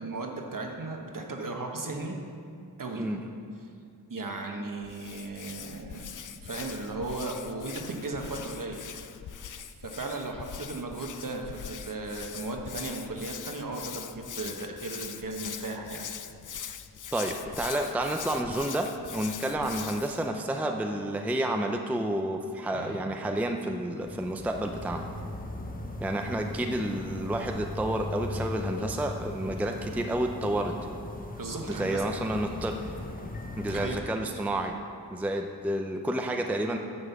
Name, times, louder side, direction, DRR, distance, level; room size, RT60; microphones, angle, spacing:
voice 1, 0.0-2.2 2.8-3.0 4.1-6.2 6.4-8.8 9.8-16.1 22.7-23.0 31.4-32.0 33.6-34.0, right 2 dB, 55° right, 2 dB, 1.2 m, -36 dB
Hands, 4.8-20.3, left 8 dB, 50° left, 0.5 m, -42 dB
voice 2, 17.1-25.1 26.0-30.8 31.7-32.8 33.6-34.8 35.1-36.8, right 1 dB, 5° right, 4 dB, 0.5 m, -30 dB
sound 1, 24.0-33.9, left 1 dB, 20° left, 0.8 m, -38 dB
9.9 x 5.5 x 6.9 m, 2.4 s
wide cardioid pair, 95°, 39 cm